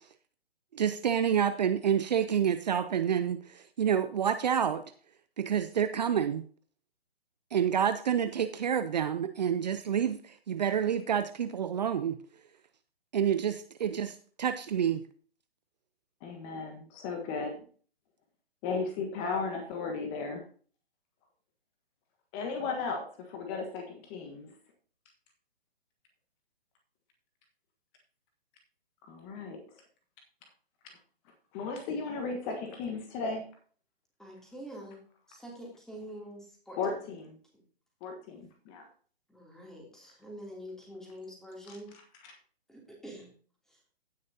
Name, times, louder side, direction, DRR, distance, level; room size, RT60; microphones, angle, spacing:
voice 1, 0.7-4.8 5.4-6.4 7.5-12.2 13.1-15.0, right 8 dB, 40° right, 10 dB, 0.7 m, -28 dB
voice 2, 16.2-17.6 18.6-20.4 22.3-24.5 29.1-29.8 30.8-31.0 31.5-33.5 36.8-37.3 38.0-38.9 41.7-41.8 42.2-42.3, left 4 dB, 20° left, 4 dB, 1.4 m, -35 dB
voice 3, 34.2-35.0 35.3-37.0 37.5-37.6 39.3-41.9 42.7-43.3 43.7-43.8, equal, ahead, -1 dB, 2.8 m, -46 dB
16.0 x 6.5 x 2.8 m, 0.43 s
figure-of-eight pair, 135°, 31 cm